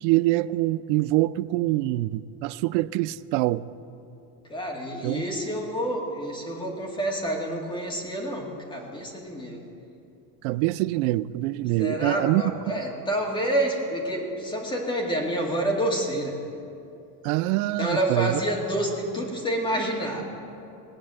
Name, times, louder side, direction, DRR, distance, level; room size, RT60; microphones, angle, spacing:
voice 1, 0.0-3.6 5.0-5.2 10.4-12.4 17.2-18.4, right 18 dB, 90° right, 16 dB, 0.5 m, -25 dB
voice 2, 4.5-9.6 11.8-16.3 17.8-20.3, right 1 dB, 10° left, -1 dB, 2.0 m, -28 dB
19.0 x 8.8 x 7.6 m, 2.7 s
cardioid pair, 170°, 39 cm